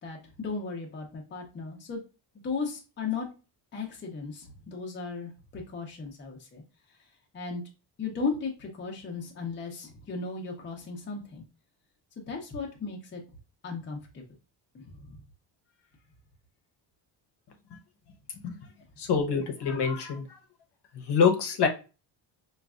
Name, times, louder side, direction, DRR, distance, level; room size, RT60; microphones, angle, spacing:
voice 1, 0.0-2.0 2.4-3.3 3.7-6.6 7.3-7.6 8.0-11.4 12.3-13.2 13.6-14.2 14.7-15.2, left 4 dB, 25° left, 0 dB, 0.6 m, -36 dB
voice 2, 19.0-20.4 20.9-21.7, left 6 dB, 60° left, 4 dB, 0.8 m, -25 dB
5.1 x 2.3 x 2.3 m, 0.31 s
cardioid pair, 170°, 46 cm